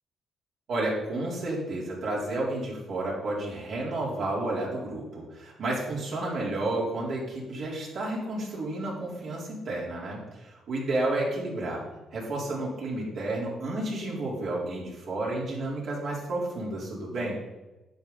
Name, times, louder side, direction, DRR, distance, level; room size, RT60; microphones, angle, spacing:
voice 1, 0.7-11.8 12.1-17.4, right 2 dB, 65° right, -4 dB, 3.9 m, -31 dB
11.0 x 7.5 x 4.1 m, 1.1 s
cardioid pair, 90°, 0 cm